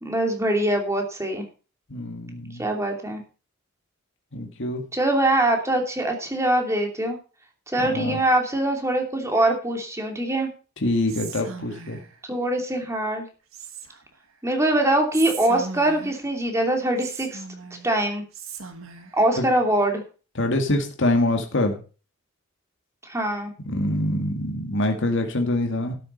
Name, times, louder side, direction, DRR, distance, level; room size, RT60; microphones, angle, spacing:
voice 1, 0.0-1.4 2.6-3.2 4.9-7.2 7.7-10.5 12.3-13.3 14.4-17.4 17.8-18.2 19.1-20.0 23.0-23.5, right 1 dB, 15° right, 3 dB, 2.8 m, -23 dB
voice 2, 1.9-2.7 4.3-4.8 7.8-8.2 10.8-12.0 19.4-19.5 20.4-21.8 23.7-25.9, left 1 dB, 60° left, 3 dB, 2.1 m, -25 dB
Whispering, 11.1-12.2 13.5-14.2 15.1-16.3 17.0-17.9 18.3-19.2, right 5 dB, 70° right, 1.9 m, -38 dB
12.5 x 7.7 x 5.4 m, 0.36 s
head